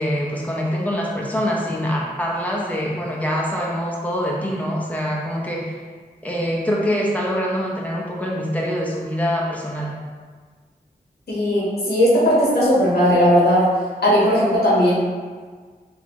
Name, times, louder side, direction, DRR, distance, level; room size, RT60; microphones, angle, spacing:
voice 1, 0.0-5.7 6.2-9.9, equal, 10° left, -3 dB, 0.7 m, -24 dB
voice 2, 11.3-13.7 14.0-14.9, equal, 85° left, -7 dB, 1.3 m, -17 dB
3.8 x 2.8 x 3.0 m, 1.5 s
cardioid pair, 55°, 16 cm